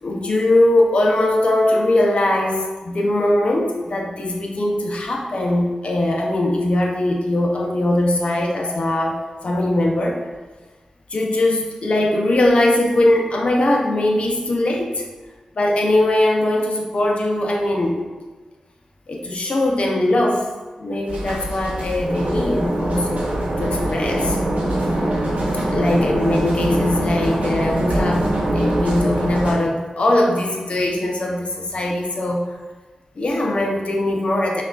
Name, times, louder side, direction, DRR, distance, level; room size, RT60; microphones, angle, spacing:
voice 1, 0.0-10.3 11.1-15.0 15.6-18.1 19.1-20.5 20.8-23.3 23.6-24.4 25.7-32.5 33.2-34.6, left 1 dB, 60° left, 0 dB, 0.6 m, -20 dB
sound 1, 21.1-29.5, right 1 dB, 80° right, 0.7 m, -23 dB
5.5 x 2.4 x 2.4 m, 1.3 s
cardioid pair, 50°, 2 cm